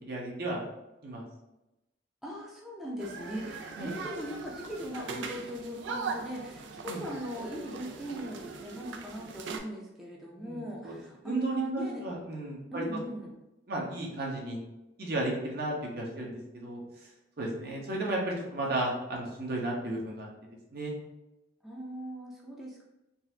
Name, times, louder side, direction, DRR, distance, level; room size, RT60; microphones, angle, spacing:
voice 1, 0.0-0.6 1.0-1.2 3.8-3.9 6.9-7.0 10.4-10.9 11.2-12.8 13.7-14.6 15.0-16.8 17.4-20.3 20.7-20.9, right 2 dB, 60° right, -2 dB, 0.9 m, -34 dB
voice 2, 2.2-12.0 12.7-13.3 21.6-22.8, equal, ahead, -4 dB, 0.5 m, -39 dB
sound 1, 3.0-9.6, right 4 dB, 90° right, 0.4 m, -40 dB
3.9 x 2.4 x 2.7 m, 0.94 s
head